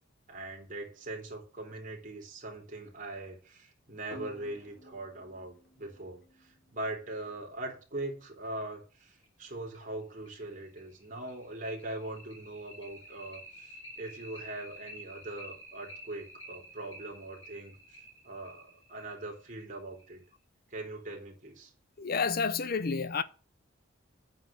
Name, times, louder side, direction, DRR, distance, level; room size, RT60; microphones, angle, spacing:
voice 1, 0.3-18.0 18.2-20.2 20.7-21.7, right 2 dB, 45° right, 3.4 m, -41 dB
sound 1, 4.1-7.3 8.7-8.8 9.2-9.3 9.7-9.8 10.3-20.3, equal, 80° left, 4.4 m, -51 dB
voice 2, 22.0-23.2, left 5 dB, 50° left, 0.6 m, -30 dB
8.6 x 5.8 x 7.5 m
head